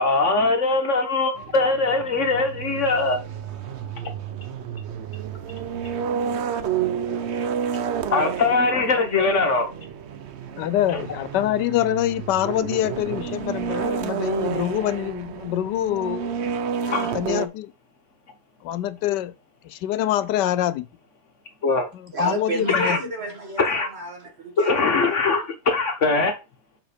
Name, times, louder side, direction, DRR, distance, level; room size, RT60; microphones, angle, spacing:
voice 1, 0.0-3.2 8.1-9.6 16.9-17.1 21.6-21.9 22.7-23.0 23.6-23.9 24.6-26.3, left 3 dB, 50° left, 1.3 m, -21 dB
sound 1, 1.4-17.5, right 7 dB, 60° right, 0.7 m, -30 dB
voice 2, 10.6-16.3 16.8-17.7 18.6-19.3 19.6-20.9 21.9-23.0, left 12 dB, 90° left, 1.2 m, -25 dB
voice 3, 22.1-25.1, right 1 dB, 40° right, 1.7 m, -31 dB
5.8 x 5.1 x 5.0 m
omnidirectional pair, 1.8 m